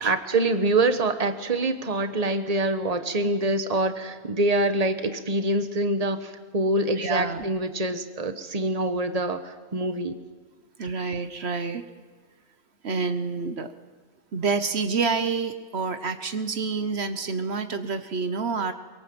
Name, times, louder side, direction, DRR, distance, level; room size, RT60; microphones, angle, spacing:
voice 1, 0.0-10.2, right 2 dB, 35° right, 8 dB, 1.5 m, -25 dB
voice 2, 7.0-7.4 10.8-11.8 12.8-13.7 14.3-18.7, right 4 dB, 75° right, 9 dB, 1.4 m, -28 dB
23.5 x 23.0 x 7.8 m, 1.4 s
omnidirectional pair, 1.1 m